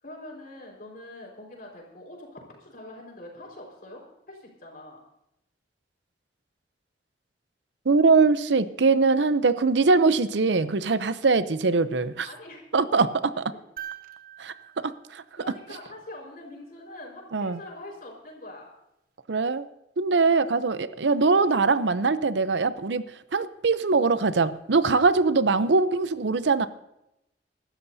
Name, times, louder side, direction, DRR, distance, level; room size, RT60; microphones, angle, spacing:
voice 1, 0.0-4.0 4.3-5.0 10.5-10.6 12.2-12.6 12.9-13.0 15.4-18.7 21.3-21.5, left 1 dB, 55° left, 0 dB, 4.7 m, -44 dB
voice 2, 7.9-12.3 12.7-13.3 14.4-15.2 17.3-17.6 19.3-19.7 20.0-23.0 23.3-26.7, right 4 dB, 85° right, 13 dB, 0.7 m, -22 dB
sound 1, 13.8-16.1 18.1-18.2, right 10 dB, 50° right, 1.0 m, -44 dB
24.0 x 12.5 x 2.7 m, 0.87 s
head